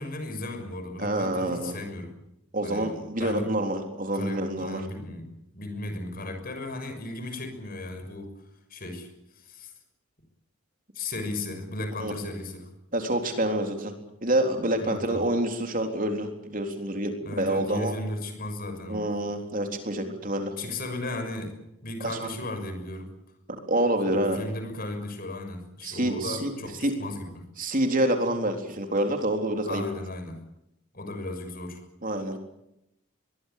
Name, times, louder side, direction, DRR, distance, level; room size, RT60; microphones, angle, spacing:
voice 1, 0.0-2.1 2.6-2.9 3.2-3.5 4.1-8.3 8.7-9.7 10.9-12.7 14.8-15.2 17.2-19.1 20.6-21.5 21.8-23.1 24.1-27.4 29.7-30.4 30.9-31.8, left 2 dB, 45° left, 7 dB, 6.3 m, -35 dB
voice 2, 1.0-1.7 2.5-4.9 12.0-12.3 12.9-13.9 14.2-17.9 18.9-20.5 22.0-22.3 23.7-24.4 25.8-26.5 26.8-26.9 27.6-29.8 32.0-32.4, right 1 dB, 40° right, 5 dB, 3.8 m, -27 dB
23.0 x 22.5 x 8.5 m, 0.83 s
head